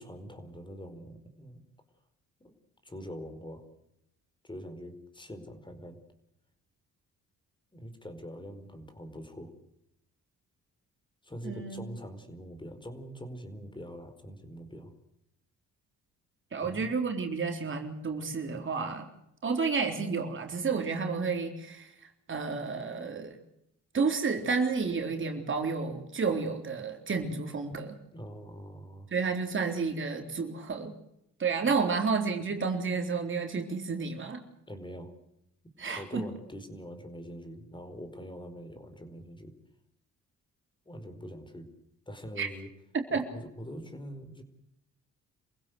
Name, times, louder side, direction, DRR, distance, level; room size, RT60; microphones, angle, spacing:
voice 1, 0.0-1.6 2.4-2.5 2.8-3.6 4.4-6.0 7.7-9.5 11.2-14.9 16.6-16.9 28.1-29.1 34.7-35.1 35.8-39.5 40.9-41.7 42.1-42.7 43.1-44.4, equal, 15° left, 8 dB, 4.8 m, -44 dB
voice 2, 11.4-11.8 16.5-19.1 19.4-23.4 23.9-28.0 29.1-30.9 31.4-34.4 35.8-36.3 42.4-42.5 42.9-43.2, right 4 dB, 40° right, 4 dB, 4.0 m, -31 dB
27.5 x 16.0 x 8.0 m, 0.80 s
cardioid pair, 90°, 30 cm